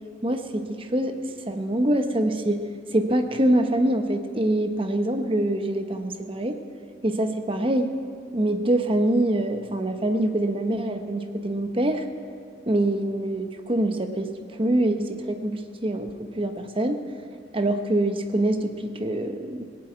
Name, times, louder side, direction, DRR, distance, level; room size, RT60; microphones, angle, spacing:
voice 1, 0.2-1.2 1.5-2.7 2.9-6.6 7.0-7.9 8.3-12.1 12.7-17.0 17.5-19.6, right 1 dB, 25° right, 6 dB, 0.9 m, -25 dB
18.5 x 7.7 x 8.7 m, 2.3 s
head